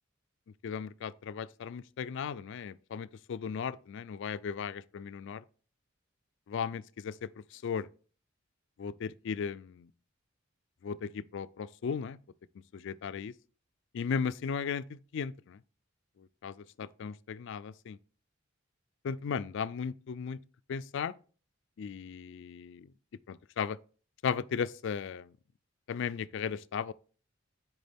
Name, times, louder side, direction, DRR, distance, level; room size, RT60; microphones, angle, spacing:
voice 1, 0.6-5.4 6.5-7.1 7.5-7.9 8.8-9.9 10.8-12.2 12.7-13.3 13.9-15.6 16.4-18.0 19.0-20.4 20.7-21.1 21.8-22.9 23.3-23.8 24.2-25.3 25.9-26.9, left 6 dB, 65° left, 0.3 m, -36 dB
9.3 x 4.8 x 3.5 m
head